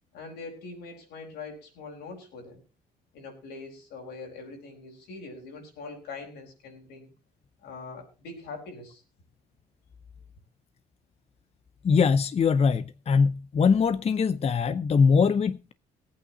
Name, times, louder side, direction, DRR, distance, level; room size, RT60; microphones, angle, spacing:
voice 1, 0.1-2.6 3.1-7.1 7.6-9.0, left 3 dB, 80° left, 4.6 m, -42 dB
voice 2, 11.8-15.7, left 5 dB, 40° left, 0.6 m, -22 dB
18.5 x 8.6 x 4.1 m
supercardioid pair, 65°, 17 cm